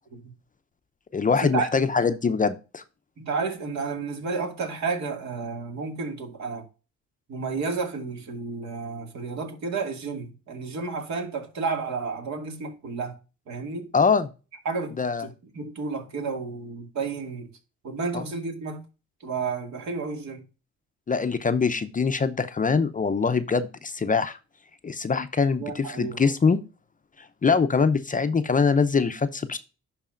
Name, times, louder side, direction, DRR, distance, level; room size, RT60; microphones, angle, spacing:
voice 1, 1.1-2.8 13.9-14.3 15.0-15.3 18.1-18.2 21.1-24.4 24.8-26.6 27.4-29.6, left 5 dB, 25° left, 0.6 m, -23 dB
voice 2, 3.2-6.6 7.3-13.2 13.5-13.9 14.7-17.5 17.8-18.8 19.2-20.4 25.6-26.3, right 4 dB, 65° right, 2.2 m, -31 dB
11.5 x 4.1 x 2.5 m
cardioid pair, 90°, 30 cm